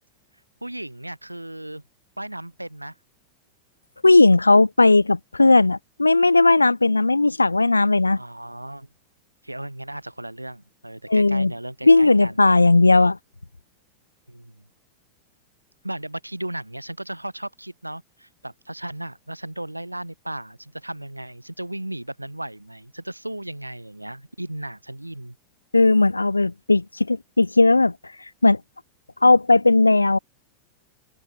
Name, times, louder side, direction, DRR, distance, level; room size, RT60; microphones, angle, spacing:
voice 1, 0.6-1.8 2.2-2.9 8.1-8.9 9.4-12.4 14.3-14.6 15.8-25.4, right 1 dB, 85° right, 2.3 m, -35 dB
voice 2, 4.0-8.2 11.1-11.5 11.9-13.2 25.7-27.9 28.4-28.6 29.2-30.2, left 2 dB, 80° left, 0.4 m, -16 dB
open air
figure-of-eight pair, 90°, 0 cm